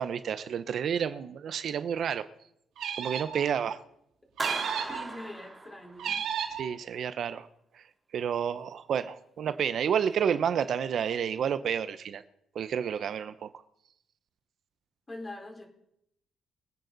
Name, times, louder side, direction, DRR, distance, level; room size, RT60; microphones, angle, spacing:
voice 1, 0.0-2.3 3.0-3.8 6.6-7.5 8.1-12.2 12.5-13.5, right 8 dB, 65° right, 12 dB, 0.8 m, -30 dB
sound 1, 2.8-3.4 4.4-5.0 6.0-6.7, right 8 dB, 80° right, 2.3 m, -33 dB
Clapping, 4.4-6.3, right 2 dB, 20° right, 3.0 m, -37 dB
voice 2, 4.9-6.2 15.1-15.7, left 1 dB, 25° left, 1 dB, 4.4 m, -43 dB
24.0 x 9.1 x 4.0 m, 0.75 s
cardioid pair, 90°, 0 cm